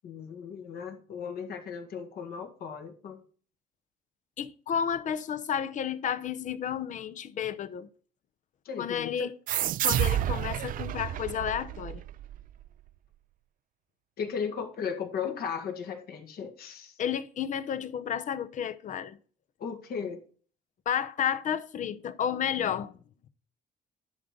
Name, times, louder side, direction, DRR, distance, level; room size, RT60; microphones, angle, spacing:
voice 1, 0.0-3.2 8.7-9.3 14.2-17.0 19.6-20.2, left 6 dB, 65° left, 1.9 m, -36 dB
voice 2, 4.4-7.9 8.8-9.3 9.8-12.0 17.0-19.2 20.9-22.9, left 8 dB, 50° left, 0.7 m, -31 dB
sound 1, 9.5-12.7, right 12 dB, 55° right, 0.4 m, -30 dB
10.5 x 3.8 x 6.5 m
cardioid pair, 110°, 17 cm